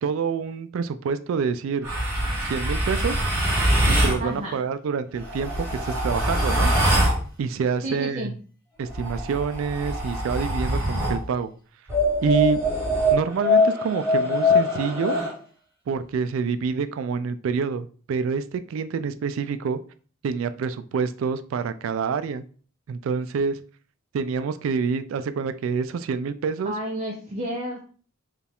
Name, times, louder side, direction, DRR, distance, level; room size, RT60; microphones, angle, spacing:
voice 1, 0.0-1.9 2.4-3.2 3.9-6.7 7.4-8.3 8.8-11.5 12.2-12.6 13.1-15.2 15.9-19.8 20.2-22.4 22.9-23.6 24.1-26.7, right 5 dB, 70° right, 12 dB, 0.3 m, -27 dB
sound 1, 1.8-4.2 5.2-7.2 8.9-11.2 11.9-15.3, equal, 10° right, 1.9 m, -23 dB
voice 2, 4.2-4.6 7.8-8.3 26.6-27.8, right 1 dB, 35° right, -1 dB, 0.6 m, -31 dB
4.5 x 2.4 x 3.4 m, 0.42 s
head